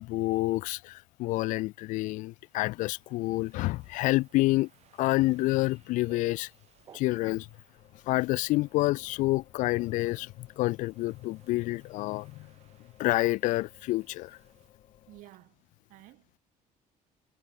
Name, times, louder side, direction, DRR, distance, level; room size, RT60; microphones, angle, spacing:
voice 1, 0.0-4.7 5.0-6.5 6.9-7.5 8.1-12.5 13.0-14.4, left 19 dB, 70° left, 0.4 m, -28 dB
sound 1, 2.4-14.7, right 13 dB, 50° right, 3.6 m, -67 dB
sound 2, 5.7-7.5, right 8 dB, 35° right, 7.2 m, -56 dB
sound 3, 7.7-15.2, left 10 dB, 45° left, 3.0 m, -61 dB
voice 2, 15.1-15.6 15.9-16.4, right 18 dB, 75° right, 1.5 m, -53 dB
cardioid pair, 175°, 14 cm